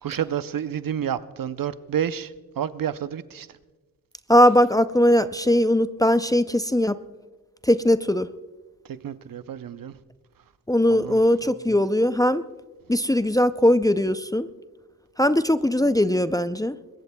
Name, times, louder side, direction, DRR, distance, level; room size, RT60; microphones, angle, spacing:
voice 1, 0.0-3.5 8.9-9.9 10.9-11.2, right 9 dB, 65° right, 0.7 m, -30 dB
voice 2, 4.3-7.0 7.6-8.3 10.7-12.4 12.9-14.5 15.2-16.8, left 1 dB, 10° left, 0.4 m, -20 dB
22.0 x 20.5 x 2.2 m
cardioid pair, 75°, 36 cm